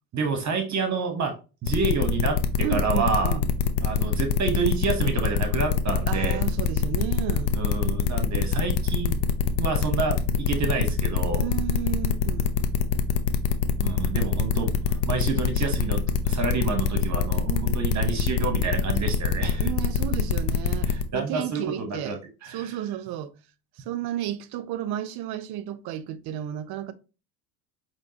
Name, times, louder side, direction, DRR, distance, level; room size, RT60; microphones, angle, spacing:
voice 1, 0.1-1.3 1.6-2.4 2.7-3.4 3.8-6.4 7.5-9.2 9.6-11.4 13.8-19.7 20.9-22.2 22.4-22.7, right 4 dB, 35° right, 1.1 m, -28 dB
sound 1, 1.7-21.0, left 7 dB, 75° left, 0.8 m, -24 dB
voice 2, 2.6-3.5 6.1-7.5 11.4-12.5 17.5-17.8 19.6-22.2 22.5-23.3 23.8-26.9, right 11 dB, 50° right, 0.7 m, -32 dB
5.2 x 3.0 x 2.8 m
hypercardioid pair, 80°, 48 cm